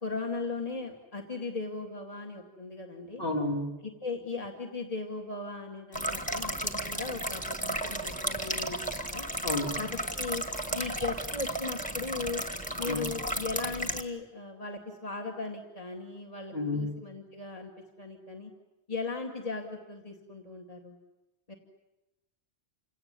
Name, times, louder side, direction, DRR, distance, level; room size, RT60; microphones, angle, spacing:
voice 1, 0.0-3.2 3.8-9.3 9.8-10.4 10.7-12.4 12.8-17.7 18.0-18.5 18.9-21.0 21.5-21.6, left 3 dB, 35° left, 2 dB, 2.4 m, -38 dB
voice 2, 3.2-3.8 9.4-9.8 12.9-13.2 16.5-17.0, left 2 dB, 60° left, 0 dB, 3.6 m, -31 dB
sound 1, 5.9-14.0, right 1 dB, 5° left, 1.5 m, -34 dB
29.0 x 17.5 x 9.8 m, 1.0 s
omnidirectional pair, 1.1 m